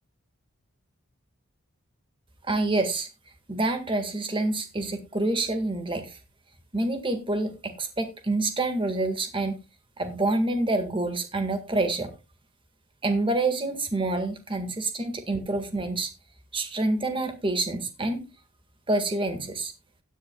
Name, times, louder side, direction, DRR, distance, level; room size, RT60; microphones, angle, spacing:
voice 1, 2.5-3.1 3.5-6.2 6.7-9.6 10.0-12.1 13.0-16.1 16.5-18.3 18.9-19.7, right 2 dB, 25° right, 1.7 m, -27 dB
16.5 x 10.0 x 2.3 m
head